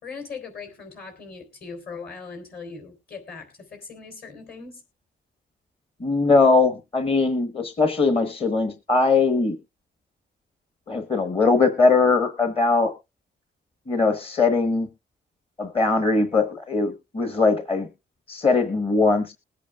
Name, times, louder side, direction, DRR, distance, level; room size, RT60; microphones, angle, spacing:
voice 1, 0.0-4.8, left 5 dB, 50° left, 4 dB, 3.9 m, -39 dB
voice 2, 6.0-9.6 10.9-12.9 13.9-14.9 15.6-17.9 18.3-19.3, left 3 dB, 30° left, 8 dB, 1.2 m, -21 dB
21.5 x 8.3 x 2.4 m, 0.27 s
cardioid pair, 125°, 20 cm